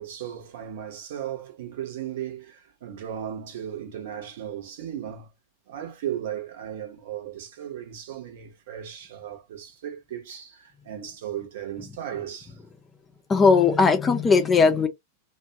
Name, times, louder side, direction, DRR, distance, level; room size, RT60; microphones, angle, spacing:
voice 1, 0.0-5.3 5.7-12.6, right 10 dB, 55° right, 0.8 m, -36 dB
voice 2, 13.3-14.9, left 5 dB, 20° left, 0.6 m, -18 dB
2.4 x 2.2 x 2.7 m
figure-of-eight pair, 90°, 0 cm